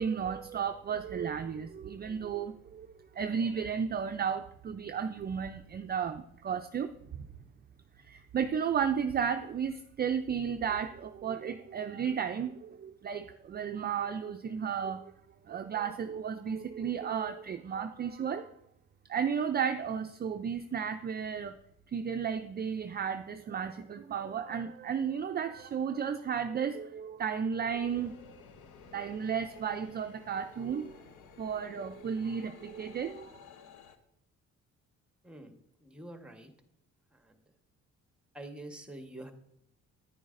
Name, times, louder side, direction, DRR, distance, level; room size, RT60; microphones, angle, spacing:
voice 1, 0.0-2.9 3.1-6.9 8.0-15.1 15.4-18.5 19.1-21.6 21.9-28.3 28.9-31.0 31.4-33.3, right 7 dB, 35° right, 8 dB, 0.4 m, -33 dB
sound 1, 27.8-34.0, left 7 dB, 80° left, 0.9 m, -54 dB
voice 2, 35.2-35.6 35.8-36.5 37.2-37.4 38.3-39.3, right 1 dB, 5° right, 6 dB, 1.2 m, -46 dB
9.6 x 9.2 x 2.5 m, 0.76 s
cardioid pair, 90°, 30 cm